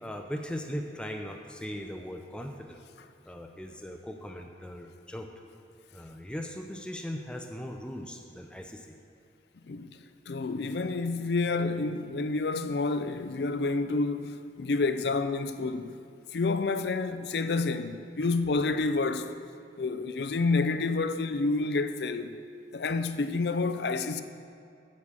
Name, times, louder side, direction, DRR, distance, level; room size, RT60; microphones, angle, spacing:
voice 1, 0.0-2.8 3.3-5.3 5.9-9.0, equal, 5° left, 0.5 m, -39 dB
voice 2, 9.7-10.0 10.3-15.9 16.3-19.3 19.8-22.3 22.7-24.2, left 3 dB, 70° left, 0.5 m, -29 dB
8.2 x 6.4 x 7.3 m
head